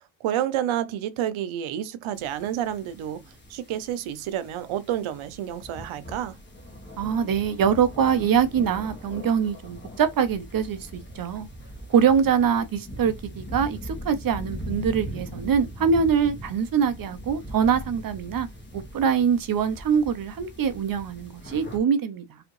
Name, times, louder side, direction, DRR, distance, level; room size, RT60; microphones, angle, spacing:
voice 1, 0.2-3.2 3.5-6.4, right 11 dB, 80° right, 0.8 m, -29 dB
sound 1, 2.1-21.8, equal, 20° left, 1.3 m, -40 dB
voice 2, 7.0-11.5 11.9-18.5 18.7-22.4, right 7 dB, 45° right, 0.6 m, -24 dB
4.9 x 2.8 x 3.0 m
cardioid pair, 135°, 47 cm